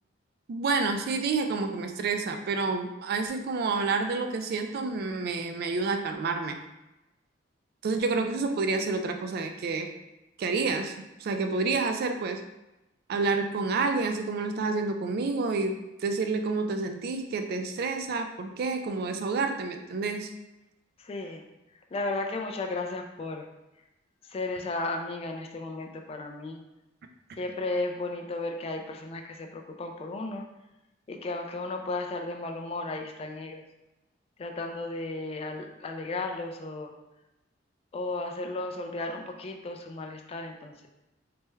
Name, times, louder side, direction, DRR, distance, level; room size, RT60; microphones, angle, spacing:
voice 1, 0.5-6.6 7.8-9.9 10.4-10.9 11.2-12.4 13.1-20.3, right 4 dB, 55° right, 6 dB, 0.3 m, -29 dB
voice 2, 21.0-21.5 21.9-23.4 24.3-26.6 27.4-30.4 31.1-33.6 34.4-36.9 37.9-40.7, left 2 dB, 30° left, 3 dB, 0.3 m, -34 dB
3.3 x 2.1 x 3.1 m, 0.98 s
head